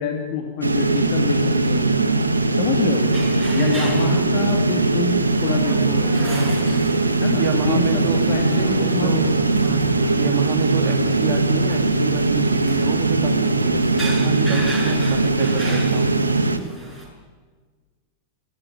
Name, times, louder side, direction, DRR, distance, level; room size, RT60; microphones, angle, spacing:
voice 1, 0.0-1.9 2.5-3.1 3.5-6.0 7.2-9.2, left 5 dB, 45° left, 2 dB, 2.7 m, -26 dB
sound 1, 0.6-16.6, right 2 dB, 80° right, 1.6 m, -20 dB
sound 2, 2.9-17.1, right 2 dB, 5° right, 7.0 m, -37 dB
voice 2, 7.4-9.8 10.2-16.2, right 6 dB, 45° right, 5 dB, 2.7 m, -28 dB
21.5 x 16.0 x 9.7 m, 1.5 s
figure-of-eight pair, 90°, 0 cm